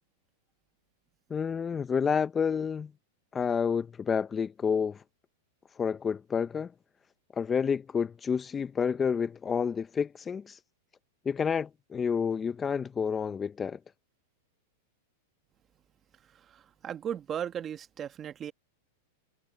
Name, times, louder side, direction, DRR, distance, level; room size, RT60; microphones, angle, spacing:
voice 1, 1.3-2.9 3.3-5.0 5.8-6.7 7.3-10.6 11.3-13.8, left 6 dB, 20° left, 0.6 m, -29 dB
voice 2, 16.3-18.5, right 9 dB, 25° right, 1.5 m, -37 dB
hypercardioid pair, 125°, 0 cm